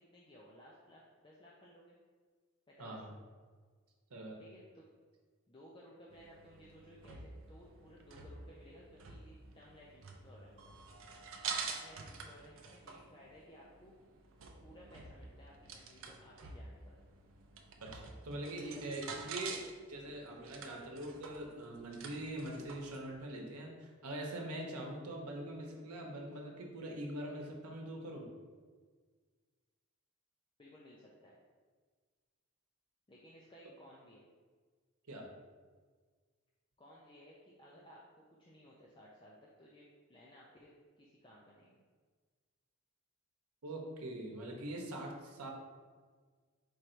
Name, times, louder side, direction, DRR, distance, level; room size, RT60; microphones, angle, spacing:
voice 1, 0.0-2.0 2.7-3.0 4.4-4.9 5.5-10.7 11.7-13.9 14.6-17.0 18.4-19.3 30.6-31.4 33.1-34.3 36.8-40.7 41.0-41.8, equal, 20° left, -5 dB, 0.5 m, -58 dB
voice 2, 2.8-3.1 4.1-4.4 17.8-19.6 19.9-28.3 35.1-35.3 43.6-45.5, right 1 dB, 85° right, 0 dB, 0.9 m, -43 dB
sound 1, 6.1-23.1, right 5 dB, 60° right, 0.5 m, -48 dB
4.6 x 2.6 x 4.4 m, 1.5 s
head